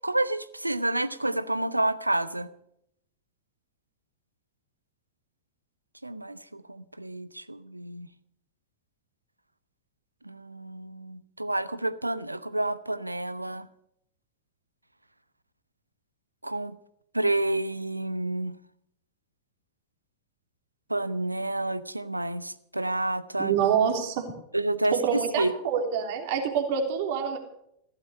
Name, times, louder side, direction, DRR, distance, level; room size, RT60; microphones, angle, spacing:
voice 1, 0.0-2.5 6.0-8.1 10.3-13.7 16.4-16.7 17.1-18.5 20.9-23.6 24.5-25.5, right 1 dB, 85° right, 16 dB, 0.8 m, -29 dB
voice 2, 23.4-24.3 24.9-27.4, right 7 dB, 50° right, 4 dB, 3.4 m, -26 dB
16.0 x 13.0 x 6.5 m, 0.75 s
figure-of-eight pair, 90°, 0 cm